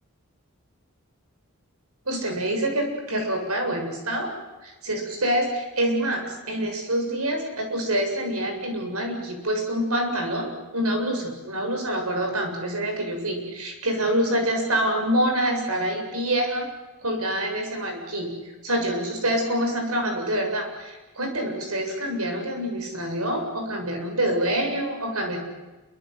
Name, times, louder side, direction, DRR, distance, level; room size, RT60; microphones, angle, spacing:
voice 1, 2.1-4.3 4.6-16.7 17.0-18.3 18.6-25.4, right 1 dB, 85° right, 4 dB, 7.7 m, -26 dB
28.0 x 24.5 x 8.0 m, 1.1 s
head